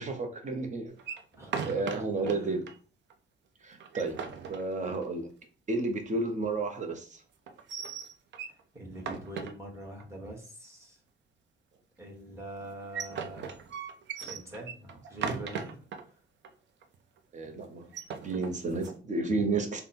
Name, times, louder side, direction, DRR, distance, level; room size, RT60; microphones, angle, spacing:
voice 1, 0.0-0.9 1.6-2.6 3.6-4.2 4.5-5.3 5.7-7.2 17.3-17.9 18.2-19.8, right 3 dB, 40° right, 5 dB, 0.9 m, -31 dB
voice 2, 1.0-2.6 8.5-11.0 12.0-13.6 14.2-15.8, right 1 dB, 15° right, -1 dB, 1.5 m, -44 dB
sound 1, 1.0-2.4 2.7-2.8 3.1-3.2 3.7-5.2 7.5-8.6 9.0-10.0 12.6-16.0 16.4-16.5 16.8-17.2 17.8-19.0, right 6 dB, 65° right, 0.6 m, -38 dB
3.5 x 2.2 x 4.3 m, 0.39 s
cardioid pair, 90°, 20 cm